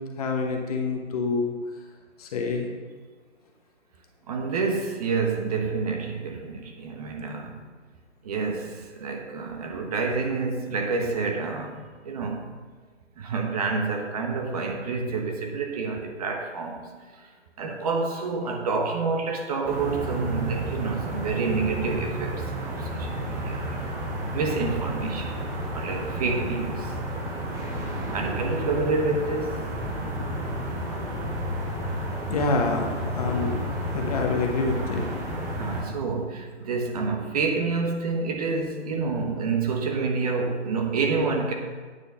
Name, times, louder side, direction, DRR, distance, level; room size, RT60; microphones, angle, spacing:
voice 1, 0.0-1.5 2.2-2.7 32.3-33.6 33.9-35.1, left 3 dB, 35° left, 2 dB, 1.2 m, -27 dB
voice 2, 4.3-7.5 8.2-11.8 12.0-12.5 13.2-17.3 17.6-23.8 24.3-25.3 25.7-26.9 28.1-29.6 35.6-41.5, right 4 dB, 35° right, 3 dB, 1.3 m, -28 dB
sound 1, 19.6-35.8, right 1 dB, 10° right, 0.7 m, -31 dB
9.4 x 6.1 x 5.7 m, 1.4 s
hypercardioid pair, 155°, 35 cm